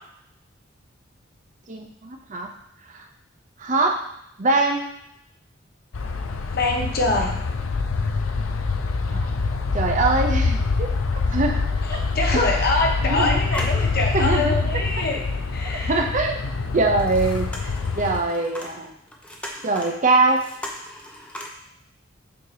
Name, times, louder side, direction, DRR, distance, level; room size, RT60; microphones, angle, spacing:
voice 1, 1.7-2.5 2.9-3.0 3.6-4.0 4.4-4.9 9.1-9.4 9.7-10.9 11.3-11.6 12.3-12.5 13.0-13.4 14.1-14.6 15.9-16.4 16.7-19.0 19.6-20.4, right 3 dB, 40° right, 3 dB, 0.7 m, -23 dB
sound 1, 5.9-18.2, left 4 dB, 85° left, 0.6 m, -25 dB
voice 2, 6.5-7.3 11.9-15.2 15.5-16.0, left 2 dB, 50° left, 1 dB, 1.1 m, -24 dB
sound 2, 13.5-14.5 15.0-15.1 16.7-21.5, left 1 dB, 5° left, 0.7 m, -38 dB
6.9 x 2.9 x 5.0 m, 0.74 s
head